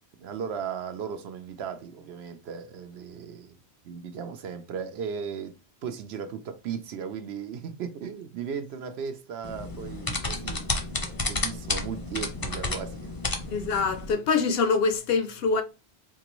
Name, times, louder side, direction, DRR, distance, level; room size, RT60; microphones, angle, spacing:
voice 1, 0.2-3.6 3.8-5.5 5.8-11.0 11.3-13.1, right 7 dB, 75° right, 0.8 m, -36 dB
sound 1, 9.4-14.1, left 2 dB, 25° left, 0.5 m, -31 dB
voice 2, 13.5-15.6, left 5 dB, 65° left, 0.7 m, -24 dB
4.4 x 2.5 x 3.0 m
omnidirectional pair, 1.1 m